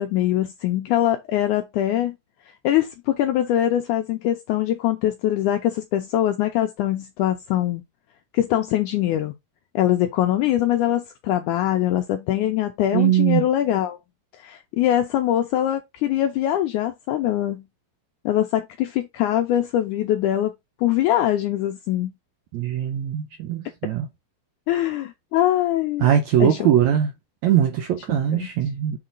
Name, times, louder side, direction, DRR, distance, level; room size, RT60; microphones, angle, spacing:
voice 1, 0.0-2.1 2.6-7.8 8.3-9.3 9.7-14.0 14.4-17.6 18.2-20.5 20.8-22.1 24.7-26.1 26.4-26.7 28.3-28.5, left 12 dB, 80° left, 1.8 m, -22 dB
voice 2, 12.9-13.5 22.5-24.0 26.0-27.1 27.4-29.0, right 10 dB, 75° right, 1.7 m, -21 dB
6.4 x 3.8 x 3.9 m
omnidirectional pair, 4.1 m